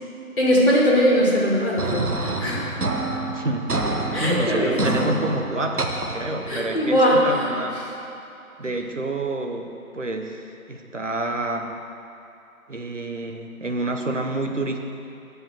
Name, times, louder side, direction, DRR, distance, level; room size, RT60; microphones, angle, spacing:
voice 1, 0.4-2.8 4.1-5.1 6.5-7.4, equal, 40° left, -5 dB, 1.7 m, -20 dB
sound 1, 1.8-6.8, right 2 dB, 85° right, 1.1 m, -28 dB
voice 2, 3.3-7.9 8.6-11.8 12.7-14.8, right 2 dB, 55° right, 4 dB, 1.0 m, -28 dB
7.9 x 5.6 x 7.5 m, 2.8 s
figure-of-eight pair, 170°, 44 cm